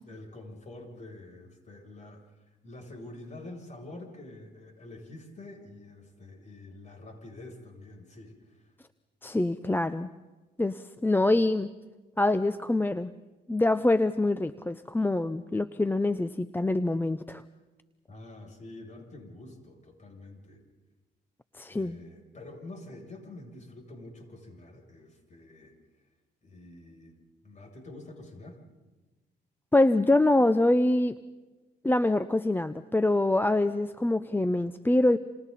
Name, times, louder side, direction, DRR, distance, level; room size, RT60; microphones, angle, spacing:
voice 1, 0.1-8.7 18.1-20.6 21.7-26.1 26.4-27.2 27.4-28.6, left 2 dB, 35° left, 1 dB, 7.7 m, -47 dB
voice 2, 9.2-10.1 10.6-11.7 12.2-13.1 13.5-17.4 21.5-22.0 29.7-31.1 31.8-35.2, left 2 dB, 10° left, 13 dB, 0.7 m, -25 dB
30.0 x 28.0 x 4.2 m, 1.2 s
cardioid pair, 90°, 20 cm